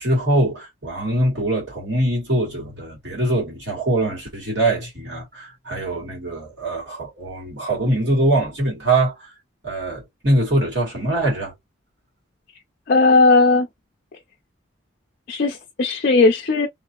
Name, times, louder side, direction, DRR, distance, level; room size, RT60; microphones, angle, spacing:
voice 1, 0.0-9.3 9.6-11.5, right 1 dB, 65° right, 1.9 m, -23 dB
voice 2, 12.9-13.7 15.3-16.7, left 3 dB, 50° left, 0.4 m, -16 dB
3.0 x 2.7 x 2.4 m
head